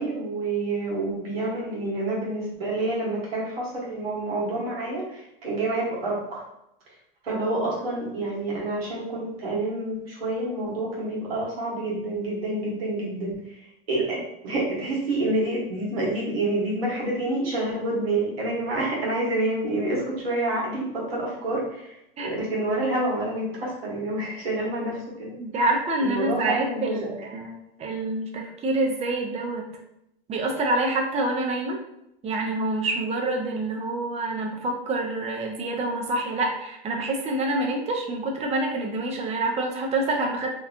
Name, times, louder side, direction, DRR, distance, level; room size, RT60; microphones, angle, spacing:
voice 1, 0.0-6.4 7.2-13.6 13.9-25.6 26.0-27.1, right 2 dB, 85° right, -5 dB, 1.3 m, -28 dB
voice 2, 25.4-29.7 30.3-31.8 32.2-40.5, right 2 dB, 20° right, 1 dB, 0.5 m, -27 dB
2.9 x 2.2 x 2.4 m, 0.82 s
hypercardioid pair, 100°, 29 cm